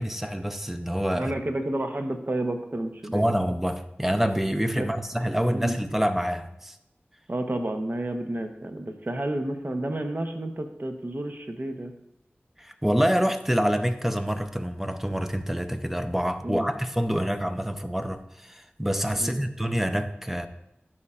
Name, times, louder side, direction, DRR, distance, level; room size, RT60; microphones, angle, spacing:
voice 1, 0.0-1.3 3.1-6.8 12.6-20.5, equal, 5° right, 8 dB, 0.5 m, -26 dB
voice 2, 1.1-3.2 4.7-4.9 5.5-5.8 7.3-11.9 16.4-16.7 19.1-19.5, right 1 dB, 50° right, 5 dB, 0.8 m, -30 dB
11.0 x 4.3 x 2.4 m, 0.83 s
wide cardioid pair, 40°, 4 cm